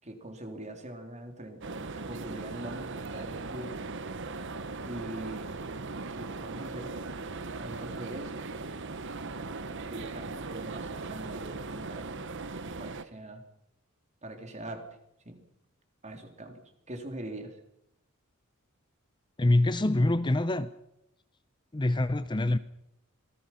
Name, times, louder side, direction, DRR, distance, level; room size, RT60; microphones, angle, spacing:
voice 1, 0.0-3.8 4.9-5.5 6.1-6.9 7.6-8.8 9.6-12.2 12.8-13.4 14.2-14.9 15.2-15.4 16.0-17.6, right 1 dB, 30° right, 3.4 m, -43 dB
sound 1, 1.6-13.0, right 3 dB, 55° right, 1.1 m, -38 dB
voice 2, 19.4-20.7 21.7-22.6, left 2 dB, 20° left, 0.7 m, -25 dB
26.5 x 19.0 x 5.7 m
head